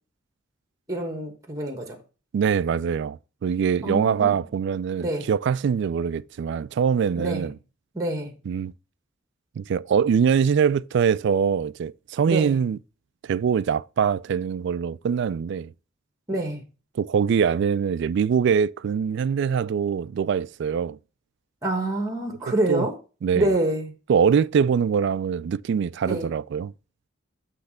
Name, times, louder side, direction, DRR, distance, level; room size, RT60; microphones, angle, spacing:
voice 1, 0.9-2.0 3.8-4.4 5.0-5.3 7.2-7.5 7.9-8.3 12.3-12.6 16.3-16.6 21.6-22.9 23.3-23.9 26.0-26.3, right 1 dB, 15° right, 1.2 m, -26 dB
voice 2, 2.3-7.6 8.5-8.7 9.6-12.8 13.2-15.7 16.9-21.0 22.5-22.9 23.2-23.5 24.1-26.7, right 7 dB, 60° right, 0.3 m, -23 dB
8.1 x 3.2 x 4.9 m
head